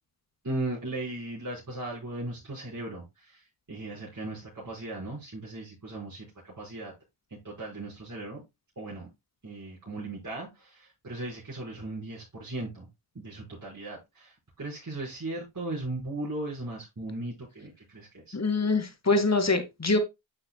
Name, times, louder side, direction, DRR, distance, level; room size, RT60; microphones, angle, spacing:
voice 1, 0.4-6.9 7.4-8.4 8.7-9.1 9.4-12.9 13.1-18.4, right 2 dB, 35° right, 5.0 m, -37 dB
voice 2, 18.3-20.0, left 3 dB, 30° left, 2.1 m, -24 dB
9.8 x 6.5 x 2.2 m
cardioid pair, 50°, 50 cm